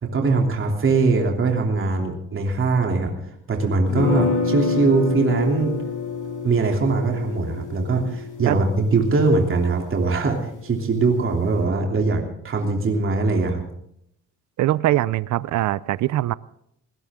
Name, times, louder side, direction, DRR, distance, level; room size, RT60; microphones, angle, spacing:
voice 1, 0.0-3.1 3.5-5.8 6.4-13.6, right 3 dB, 45° right, 1 dB, 3.2 m, -21 dB
sound 1, 3.9-9.9, left 4 dB, 85° left, 6.4 m, -27 dB
voice 2, 14.6-16.3, right 15 dB, 70° right, 19 dB, 0.6 m, -22 dB
20.5 x 18.5 x 3.7 m, 0.74 s
cardioid pair, 90°, 30 cm